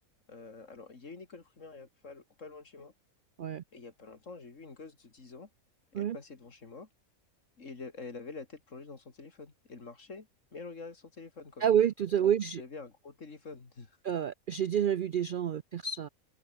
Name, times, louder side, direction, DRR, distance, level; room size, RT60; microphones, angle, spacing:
voice 1, 0.3-2.9 3.7-5.5 5.9-6.9 7.6-11.7 12.2-12.3 12.6-14.0, left 4 dB, 60° left, 3.0 m, -47 dB
voice 2, 11.6-12.6 14.0-16.1, right 9 dB, 70° right, 0.5 m, -28 dB
omnidirectional pair, 1.5 m